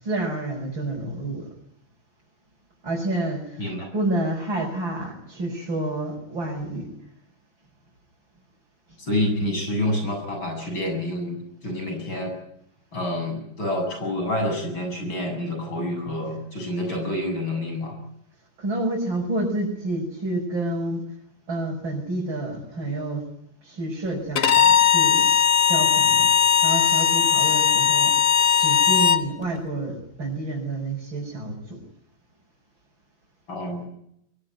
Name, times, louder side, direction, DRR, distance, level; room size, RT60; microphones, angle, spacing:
voice 1, 0.0-1.5 2.8-3.7 3.9-6.9 18.6-21.1 21.5-23.3 23.6-25.3 25.7-26.4 26.6-28.1 28.6-31.8, right 2 dB, 80° right, -3 dB, 6.9 m, -29 dB
voice 2, 3.6-3.9 9.0-12.3 12.9-18.0 33.5-33.8, left 1 dB, 90° left, 4 dB, 8.7 m, -28 dB
Bowed string instrument, 24.4-29.2, left 8 dB, 50° left, 1.4 m, -18 dB
23.5 x 22.0 x 9.5 m, 0.76 s
omnidirectional pair, 2.1 m